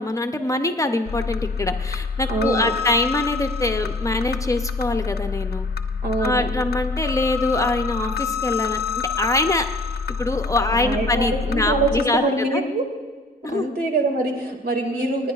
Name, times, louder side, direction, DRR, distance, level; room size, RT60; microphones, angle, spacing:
voice 1, 0.0-5.7 6.2-9.7 10.2-12.2 12.5-12.6 13.4-13.7 14.9-15.1, left 2 dB, 20° left, 6 dB, 0.6 m, -24 dB
sound 1, 1.1-12.0, left 6 dB, 80° left, 0.5 m, -27 dB
voice 2, 2.3-2.7 6.0-6.5 10.8-12.8 13.5-15.3, right 2 dB, 75° right, 3 dB, 2.0 m, -24 dB
29.5 x 9.9 x 2.4 m, 1.4 s
wide cardioid pair, 135°, 16 cm